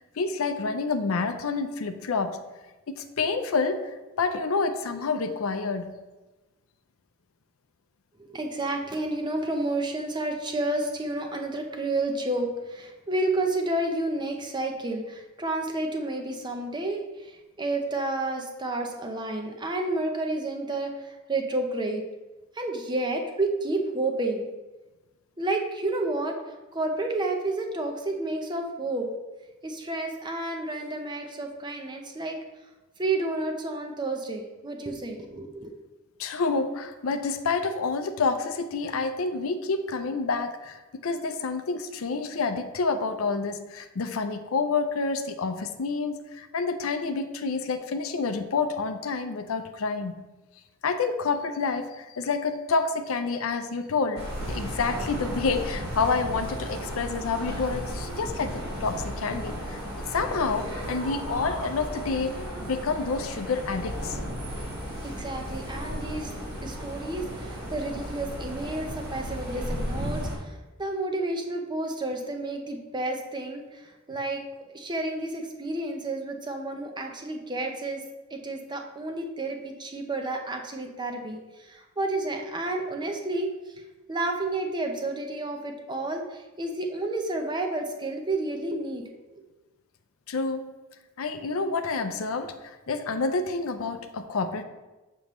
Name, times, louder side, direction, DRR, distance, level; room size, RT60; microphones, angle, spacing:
voice 1, 0.2-2.4 2.9-5.9 36.2-50.2 50.8-59.8 60.1-62.4 62.6-64.2 90.3-90.7 91.2-94.6, left 4 dB, 70° left, 9 dB, 0.5 m, -28 dB
voice 2, 8.2-22.0 22.5-24.5 25.4-29.1 29.6-32.4 33.0-35.7 65.0-66.3 66.6-74.4 74.7-78.0 78.3-83.7 84.1-89.4, right 2 dB, 20° right, 3 dB, 0.6 m, -30 dB
sound 1, 54.2-70.4, equal, 50° right, 1.5 m, -34 dB
7.1 x 5.3 x 3.1 m, 1.1 s
head